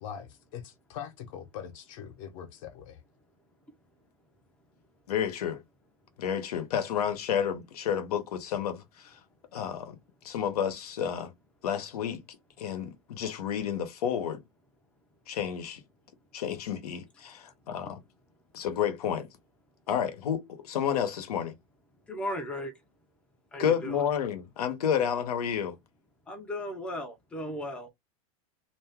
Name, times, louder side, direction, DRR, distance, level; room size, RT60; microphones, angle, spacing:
voice 1, 0.0-3.0, left 8 dB, 60° left, 0.9 m, -42 dB
voice 2, 5.1-5.6 6.2-9.2 9.5-10.0 10.2-11.3 11.6-14.4 15.3-15.8 16.3-18.0 18.5-19.3 19.9-21.5 23.6-25.8, left 8 dB, 85° left, 0.8 m, -30 dB
voice 3, 22.0-22.7 23.5-24.0 26.3-27.9, equal, 5° left, 0.5 m, -36 dB
2.6 x 2.2 x 3.4 m
supercardioid pair, 145°, 19 cm